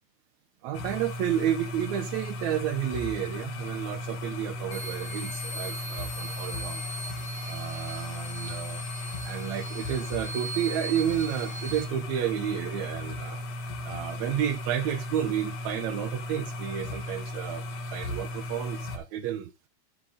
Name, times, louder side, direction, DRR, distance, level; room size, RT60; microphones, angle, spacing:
voice 1, 0.6-6.8 7.5-8.8 9.2-13.5 13.8-17.6 17.9-19.5, right 10 dB, 75° right, 1.9 m, -31 dB
sound 1, 0.7-19.0, left 1 dB, 65° left, 2.6 m, -36 dB
sound 2, 4.7-11.8, right 1 dB, 30° left, 5.1 m, -40 dB
14.5 x 5.1 x 3.5 m
omnidirectional pair, 3.5 m